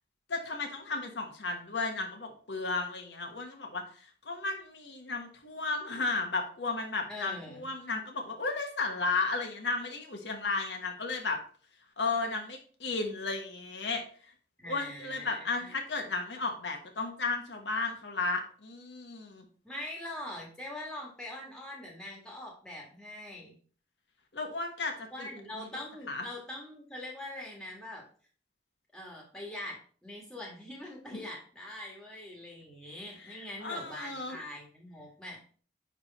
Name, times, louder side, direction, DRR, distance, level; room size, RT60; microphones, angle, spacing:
voice 1, 0.3-11.4 12.0-14.3 14.7-19.5 24.3-25.3 25.5-25.7 26.1-26.2 31.1-31.3 33.2-34.4, left 3 dB, 85° left, 3 dB, 1.3 m, -34 dB
voice 2, 7.1-7.7 14.6-15.8 19.6-23.6 25.1-28.1 28.9-35.4, left 1 dB, 5° left, -1 dB, 1.9 m, -43 dB
9.6 x 3.5 x 4.3 m, 0.44 s
head